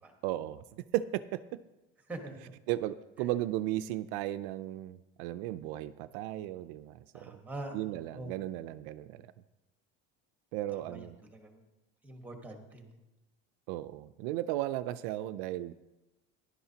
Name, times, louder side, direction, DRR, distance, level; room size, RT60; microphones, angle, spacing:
voice 1, 0.2-1.6 2.7-7.3 7.7-9.2 10.5-11.2 13.7-15.7, right 14 dB, 70° right, 12 dB, 0.5 m, -35 dB
voice 2, 2.1-2.4 3.2-3.3 7.1-8.4 10.7-11.6 12.0-13.0, right 2 dB, 5° right, 3 dB, 1.3 m, -44 dB
17.0 x 11.5 x 2.8 m, 1.0 s
cardioid pair, 175°, 29 cm